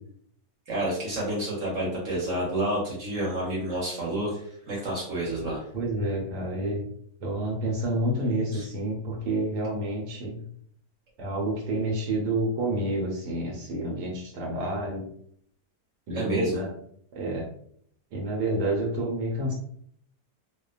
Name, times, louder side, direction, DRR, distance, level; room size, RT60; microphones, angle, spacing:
voice 1, 0.7-5.6 8.5-8.6 16.1-16.6, right 1 dB, 55° right, -5 dB, 1.1 m, -29 dB
voice 2, 5.7-6.8 7.2-10.4 11.2-15.0 16.1-16.7 17.1-17.5 18.1-19.5, right 1 dB, 85° right, -1 dB, 1.2 m, -29 dB
2.7 x 2.1 x 2.3 m, 0.65 s
omnidirectional pair, 1.7 m